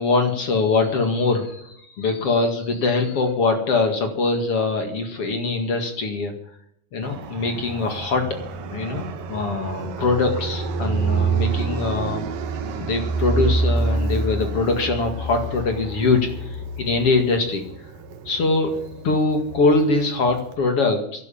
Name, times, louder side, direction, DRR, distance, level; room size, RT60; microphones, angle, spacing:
voice 1, 0.0-6.3 6.9-8.4 8.7-12.2 12.6-17.6 18.3-18.7 19.0-21.3, left 3 dB, 45° left, 5 dB, 2.3 m, -22 dB
Fixed-wing aircraft airplane, 7.0-20.5, right 3 dB, 65° right, 3.0 m, -27 dB
12.5 x 11.5 x 8.7 m, 0.71 s
omnidirectional pair, 4.5 m